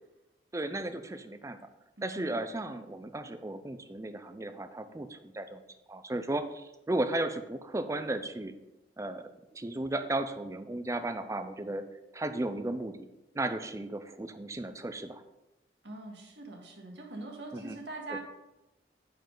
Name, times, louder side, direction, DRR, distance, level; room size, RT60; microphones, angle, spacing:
voice 1, 0.5-1.6 2.0-5.6 5.9-8.5 9.0-9.2 9.5-11.8 12.1-13.0 13.3-15.2 17.5-17.8, right 2 dB, 15° right, 9 dB, 0.5 m, -35 dB
voice 2, 2.0-2.4 15.8-18.2, right 2 dB, 75° right, 0 dB, 1.8 m, -43 dB
9.1 x 5.2 x 3.9 m, 0.95 s
head